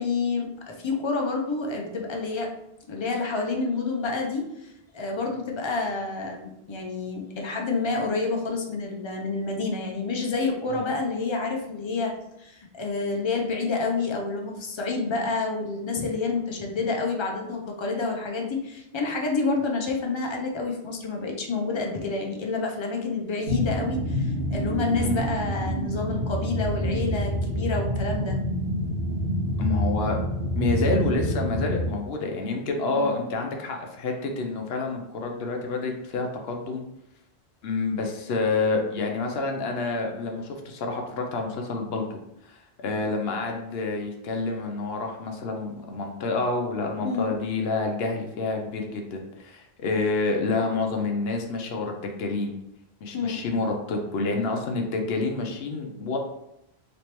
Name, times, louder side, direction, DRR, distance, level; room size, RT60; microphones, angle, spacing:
voice 1, 0.0-2.5 2.9-12.1 12.4-28.4 32.9-33.3 47.0-47.4 53.1-53.4, left 3 dB, 40° left, 1 dB, 0.4 m, -28 dB
sound 1, 23.4-31.9, equal, 65° right, 1.3 m, -27 dB
voice 2, 29.6-30.2 30.6-36.8 37.6-42.2 42.4-52.6 53.0-56.2, left 3 dB, 70° left, 2 dB, 0.8 m, -28 dB
3.3 x 3.0 x 2.9 m, 0.83 s
omnidirectional pair, 1.1 m